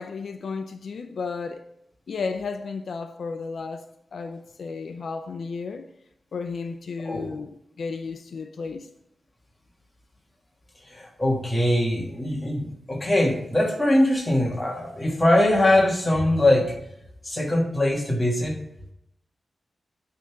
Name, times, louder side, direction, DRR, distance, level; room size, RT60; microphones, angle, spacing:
voice 1, 0.0-1.6 2.1-5.9 6.3-8.9, left 4 dB, 70° left, 0.4 m, -33 dB
voice 2, 7.0-7.3 10.9-16.8 17.2-18.6, left 1 dB, 15° left, 1.4 m, -22 dB
10.0 x 3.5 x 5.7 m
wide cardioid pair, 175°, 0 cm